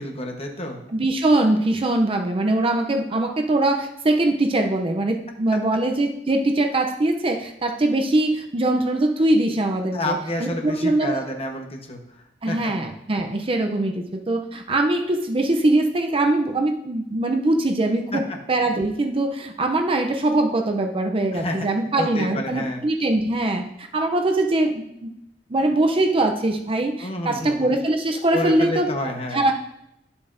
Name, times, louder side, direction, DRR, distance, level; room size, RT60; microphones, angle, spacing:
voice 1, 0.0-0.8 9.9-12.0 12.5-12.7 18.1-18.2 21.3-21.7 22.0-22.8 27.0-27.7 28.3-29.5, left 1 dB, 35° left, 3 dB, 1.0 m, -29 dB
voice 2, 0.9-11.2 12.4-25.1 25.5-28.9 29.3-29.5, right 2 dB, 30° right, 5 dB, 0.5 m, -22 dB
11.5 x 6.9 x 2.6 m, 0.80 s
head